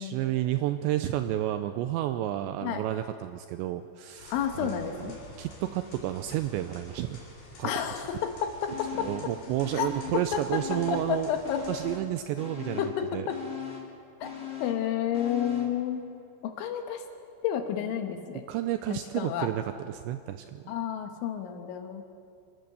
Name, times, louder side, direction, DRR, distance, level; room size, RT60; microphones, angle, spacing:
voice 1, 0.0-5.1 5.4-7.2 7.6-7.7 8.9-11.3 11.7-12.8 13.1-13.3 18.5-20.6, right 13 dB, 85° right, 9 dB, 2.6 m, -31 dB
sound 1, 4.2-12.0, left 2 dB, 50° left, 5.2 m, -49 dB
voice 2, 4.3-5.2 7.6-9.1 9.7-9.9 10.3-11.6 12.8-13.4 14.2-14.3 14.6-16.1 16.4-17.0 17.4-18.5 18.9-19.5 20.7-22.0, left 9 dB, 75° left, 5 dB, 3.7 m, -31 dB
sound 2, 8.7-9.3 9.6-11.2 11.4-15.8 16.2-16.3, left 9 dB, 35° left, 0.8 m, -40 dB
27.0 x 15.0 x 6.9 m, 2.4 s
omnidirectional pair, 5.7 m